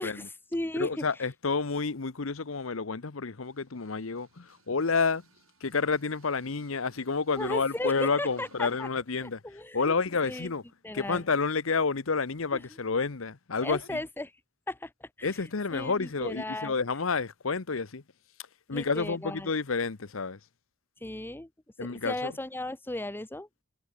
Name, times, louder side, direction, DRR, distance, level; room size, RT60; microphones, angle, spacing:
voice 1, 0.0-0.9 7.3-8.9 9.2-9.9 10.2-10.5 10.8-11.2 12.5-12.6 13.6-14.3 14.7-15.3 15.7-16.8 18.7-19.5 21.0-21.5 21.8-23.5, left 1 dB, 10° left, 0.9 m, -36 dB
voice 2, 0.8-5.2 5.6-9.4 9.7-10.6 10.9-14.0 15.2-18.0 18.7-20.4 21.8-22.3, left 4 dB, 80° left, 1.0 m, -29 dB
sound 1, 3.3-9.1, right 3 dB, 85° right, 3.9 m, -60 dB
head